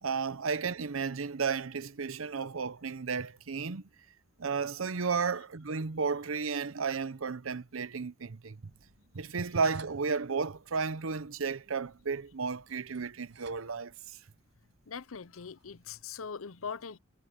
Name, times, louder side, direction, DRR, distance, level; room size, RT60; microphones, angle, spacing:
voice 1, 0.0-3.8 4.4-8.7 9.1-14.2, right 5 dB, 80° right, 0.8 m, -33 dB
sound 1, 8.7-16.0, right 4 dB, 60° right, 7.6 m, -61 dB
voice 2, 14.9-17.0, left 6 dB, 85° left, 0.7 m, -41 dB
head